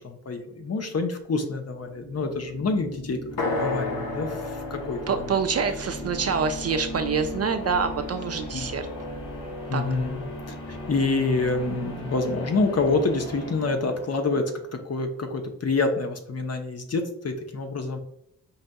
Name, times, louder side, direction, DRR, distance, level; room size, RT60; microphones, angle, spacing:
voice 1, 0.0-5.0 8.5-8.7 9.7-10.2 10.5-10.6 10.9-18.0, left 3 dB, 40° left, 5 dB, 0.7 m, -27 dB
sound 1, 1.7-14.6, left 1 dB, 80° left, 1.4 m, -38 dB
sound 2, 3.4-7.3, left 2 dB, 60° left, 1.0 m, -32 dB
voice 2, 5.1-8.9 9.7-9.8, right 5 dB, 40° right, 7 dB, 0.4 m, -26 dB
5.5 x 2.5 x 2.2 m, 0.75 s
supercardioid pair, 45°, 38 cm